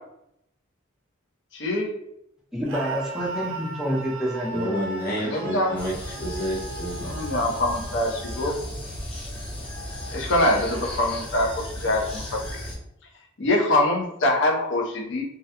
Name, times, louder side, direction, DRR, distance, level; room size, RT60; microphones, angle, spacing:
voice 1, 1.5-1.9 5.2-5.7 7.0-8.6 10.1-12.4 13.4-15.2, left 1 dB, 65° left, 1 dB, 0.6 m, -24 dB
voice 2, 2.5-4.8, equal, 5° right, -3 dB, 0.4 m, -28 dB
Screaming, 2.7-8.6, right 3 dB, 75° right, 0.4 m, -37 dB
voice 3, 4.5-7.1, equal, 50° left, -4 dB, 1.0 m, -29 dB
sound 1, 5.8-12.8, left 1 dB, 30° left, 0.7 m, -35 dB
2.3 x 2.1 x 2.7 m, 0.77 s
head